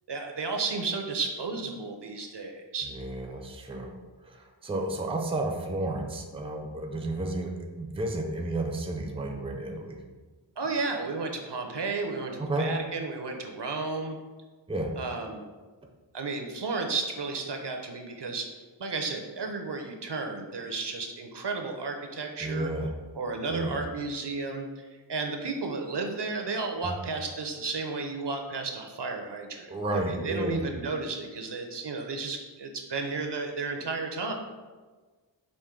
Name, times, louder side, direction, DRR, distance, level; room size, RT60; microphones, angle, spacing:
voice 1, 0.1-2.9 10.6-14.2 15.0-15.4 16.1-18.5 18.8-22.7 23.1-24.8 25.1-34.3, right 3 dB, 60° right, 4 dB, 0.6 m, -33 dB
voice 2, 2.8-4.0 4.2-7.5 7.8-10.0 12.4-12.7 14.7-14.9 22.4-22.9 23.5-23.8 26.8-26.9 29.7-30.6, right 2 dB, 10° right, 2 dB, 0.5 m, -32 dB
5.1 x 2.5 x 3.6 m, 1.3 s
wide cardioid pair, 45°, 48 cm